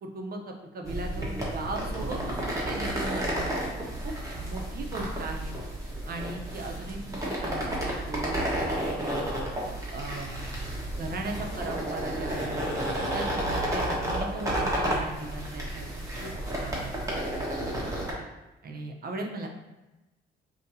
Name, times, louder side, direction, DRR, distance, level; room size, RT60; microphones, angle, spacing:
voice 1, 0.0-3.4 4.0-5.5 6.1-9.2 9.9-10.3 11.0-12.5 13.1-16.3 16.6-16.9 18.6-19.5, right 2 dB, 50° right, 2 dB, 0.8 m, -37 dB
sound 1, 0.8-18.1, right 1 dB, 15° right, 1.4 m, -31 dB
5.1 x 2.9 x 2.7 m, 1.0 s
cardioid pair, 90°, 20 cm